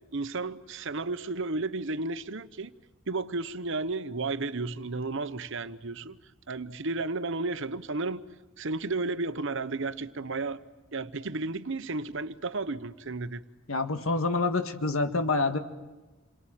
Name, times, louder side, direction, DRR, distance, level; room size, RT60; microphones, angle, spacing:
voice 1, 0.1-2.7 3.1-6.2 6.5-8.2 8.6-10.6 10.9-13.4, right 3 dB, 65° right, 1.0 m, -33 dB
voice 2, 13.7-15.6, left 3 dB, 75° left, 1.8 m, -27 dB
28.5 x 23.0 x 9.0 m
head